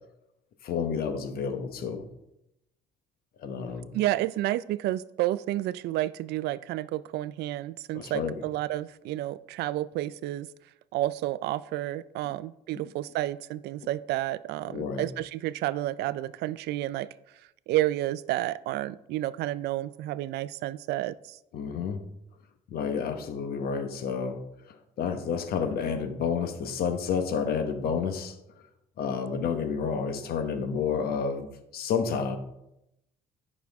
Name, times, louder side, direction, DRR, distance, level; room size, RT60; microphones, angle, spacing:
voice 1, 0.6-2.0 3.4-3.9 7.9-8.4 14.7-15.1 21.5-22.0 22.7-24.4 25.0-28.3 29.0-31.5 31.7-32.4, left 6 dB, 65° left, 7 dB, 1.2 m, -30 dB
voice 2, 3.9-10.5 10.9-17.1 17.7-21.4, right 15 dB, 80° right, 17 dB, 0.4 m, -30 dB
11.5 x 6.1 x 3.5 m, 0.85 s
cardioid pair, 110°, 17 cm